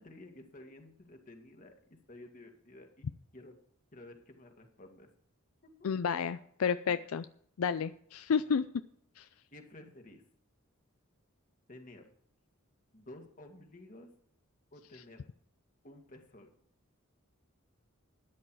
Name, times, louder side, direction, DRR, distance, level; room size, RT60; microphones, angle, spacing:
voice 1, 0.0-1.7 2.1-3.1 3.3-3.5 3.9-5.1 5.6-5.7 6.9-7.1 9.5-10.2 11.7-12.1 12.9-14.1 14.7-15.2 15.8-16.5, left 1 dB, 40° left, 4 dB, 2.0 m, -52 dB
voice 2, 5.8-7.3 7.6-8.6 9.2-9.3, left 6 dB, 75° left, 12 dB, 0.4 m, -31 dB
13.0 x 10.0 x 4.7 m, 0.65 s
head